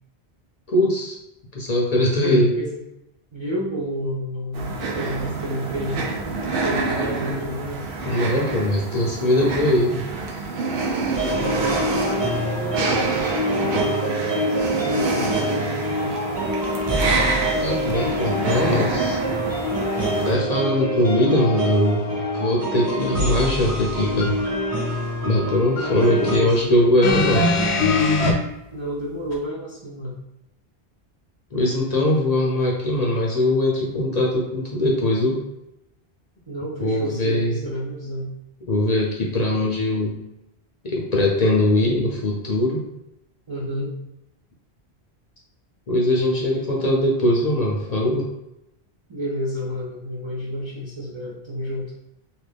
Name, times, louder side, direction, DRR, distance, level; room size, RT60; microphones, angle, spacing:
voice 1, 0.7-1.2 1.5-2.5 8.0-10.1 17.5-19.2 20.2-24.4 25.2-27.5 31.5-35.4 36.8-37.6 38.7-40.2 40.8-42.8 45.9-48.3, left 1 dB, 50° left, -3 dB, 0.6 m, -21 dB
voice 2, 2.0-2.8 3.3-6.1 6.6-7.9 11.6-16.1 25.8-26.7 28.7-30.2 36.5-38.3 43.5-43.9 49.1-51.9, equal, 40° right, -7 dB, 0.5 m, -31 dB
sound 1, 4.5-20.3, right 3 dB, 65° right, 0.8 m, -27 dB
sound 2, 11.1-26.4, equal, 20° right, 1.2 m, -25 dB
sound 3, 27.0-28.3 29.3-29.4, left 2 dB, 90° left, 0.9 m, -19 dB
2.9 x 2.5 x 3.3 m, 0.87 s
omnidirectional pair, 1.1 m